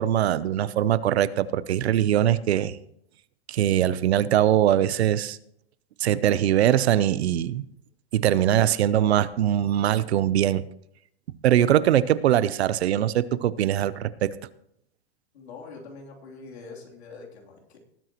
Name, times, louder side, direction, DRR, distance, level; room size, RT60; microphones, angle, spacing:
voice 1, 0.0-2.8 3.5-5.4 6.0-7.6 8.1-10.6 11.4-14.3, right 11 dB, 85° right, 17 dB, 0.8 m, -22 dB
voice 2, 15.3-17.8, left 4 dB, 85° left, -1 dB, 3.2 m, -44 dB
19.0 x 9.1 x 3.0 m, 0.73 s
supercardioid pair, 145°, 31 cm